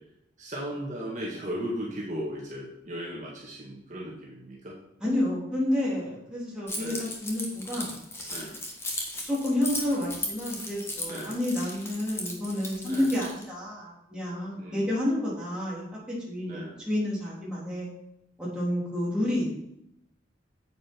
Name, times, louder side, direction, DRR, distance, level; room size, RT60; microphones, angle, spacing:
voice 1, 0.4-4.8 6.8-7.1 8.3-8.5 11.0-11.4 12.8-13.1 14.6-14.9 16.4-16.8, equal, 40° right, -4 dB, 1.9 m, -36 dB
voice 2, 5.0-8.5 9.2-15.8 16.1-17.9 18.4-19.4, left 1 dB, 5° right, -7 dB, 3.5 m, -30 dB
Keys jangling, 6.7-13.4, left 1 dB, 15° left, 1.4 m, -36 dB
9.2 x 7.7 x 4.6 m, 0.80 s
head